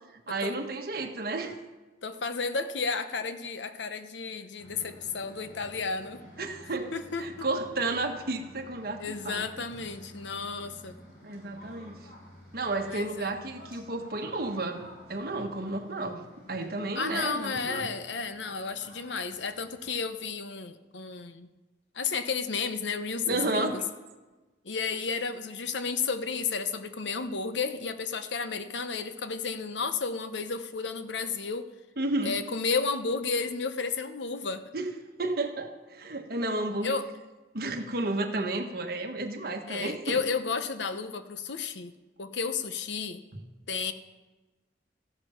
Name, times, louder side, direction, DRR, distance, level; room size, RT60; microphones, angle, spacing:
voice 1, 0.3-1.5 6.4-6.9 7.2-9.4 11.2-12.0 12.5-14.8 15.1-16.2 16.5-17.9 23.3-23.8 32.0-32.3 34.7-34.9 35.2-36.9 37.5-40.2 43.3-43.4, right 2 dB, 55° right, 4 dB, 1.4 m, -32 dB
voice 2, 2.0-6.2 6.9-7.5 9.0-11.0 12.9-13.3 16.9-21.5 21.9-23.8 24.6-31.7 32.2-34.7 36.8-37.1 39.7-41.9 42.2-43.3 43.7-43.9, left 5 dB, 80° left, 10 dB, 0.9 m, -32 dB
sound 1, 4.6-19.9, equal, 50° left, 5.7 m, -52 dB
14.5 x 11.0 x 5.7 m, 1.2 s
head